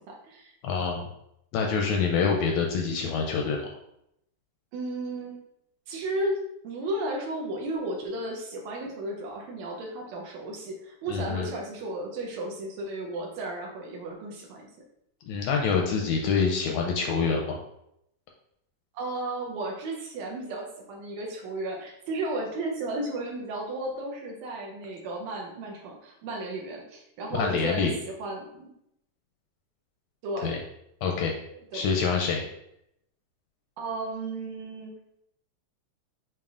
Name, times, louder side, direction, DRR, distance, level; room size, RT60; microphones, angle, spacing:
voice 1, 0.1-0.5 4.7-5.4 5.9-14.7 18.9-27.9 28.2-28.7 30.2-30.6 31.7-31.8 33.8-34.9, right 2 dB, 75° right, -1 dB, 1.9 m, -34 dB
voice 2, 0.6-1.1 1.5-3.7 11.1-11.5 15.3-17.6 27.3-27.9 30.4-30.6 31.0-31.3 31.7-32.4, left 5 dB, 80° left, 1 dB, 1.7 m, -26 dB
6.9 x 2.9 x 2.4 m, 0.77 s
omnidirectional pair, 3.5 m